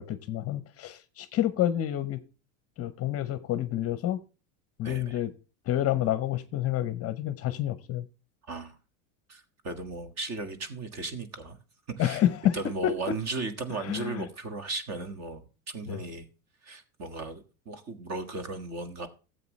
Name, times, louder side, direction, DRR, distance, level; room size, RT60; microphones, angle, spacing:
voice 1, 0.0-2.2 2.8-4.2 4.8-5.3 5.7-8.1 12.0-12.6 13.8-14.2 15.9-16.0, left 12 dB, 30° left, 0.8 m, -28 dB
voice 2, 4.8-5.2 8.5-8.8 9.3-11.6 12.0-12.2 12.5-16.3 16.6-19.1, right 3 dB, 35° right, 1.7 m, -36 dB
14.0 x 7.9 x 3.1 m
supercardioid pair, 135°, 45 cm